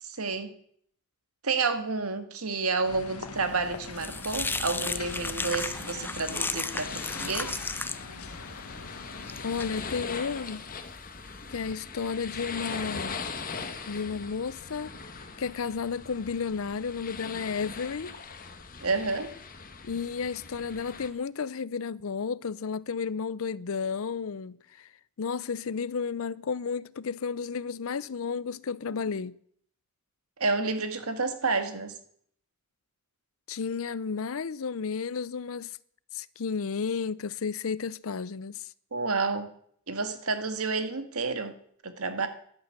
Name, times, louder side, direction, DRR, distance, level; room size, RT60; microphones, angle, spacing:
voice 1, 0.0-0.5 1.4-7.6 18.8-19.3 30.4-31.9 38.9-39.5 39.9-41.5 41.8-42.3, right 4 dB, 85° right, 1.9 m, -30 dB
sound 1, 2.8-10.0, left 3 dB, 90° left, 1.6 m, -43 dB
sound 2, 3.5-11.7, left 3 dB, 10° left, 0.5 m, -36 dB
sound 3, 4.6-21.1, left 5 dB, 40° left, 1.4 m, -41 dB
voice 2, 9.4-10.6 11.5-13.2 13.9-14.9 15.4-18.1 19.8-24.9 25.2-29.4 33.5-35.8 36.1-38.7, left 5 dB, 70° left, 0.5 m, -32 dB
12.0 x 11.5 x 8.2 m
head